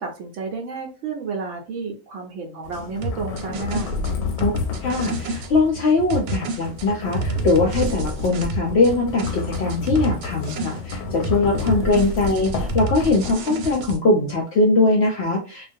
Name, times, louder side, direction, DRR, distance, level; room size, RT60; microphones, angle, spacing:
voice 1, 0.0-4.0 11.6-11.8, right 4 dB, 70° right, 2 dB, 0.8 m, -31 dB
sound 1, 2.6-13.6, left 4 dB, 90° left, 1.1 m, -31 dB
sound 2, 3.0-5.5 6.1-8.9 9.2-11.0 11.2-14.0, right 2 dB, 85° right, 1.1 m, -29 dB
voice 2, 4.8-15.7, left 3 dB, 70° left, 0 dB, 0.6 m, -21 dB
2.4 x 2.2 x 2.5 m, 0.36 s
omnidirectional pair, 1.5 m